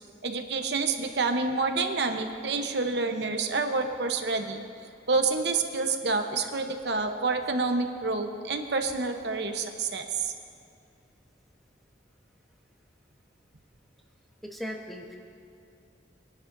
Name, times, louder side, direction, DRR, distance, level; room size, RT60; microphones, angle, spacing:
voice 1, 0.2-4.6 5.1-10.3, right 4 dB, 65° right, 5 dB, 0.9 m, -28 dB
voice 2, 14.4-15.2, equal, ahead, 0 dB, 1.0 m, -37 dB
22.5 x 11.0 x 2.6 m, 2.5 s
head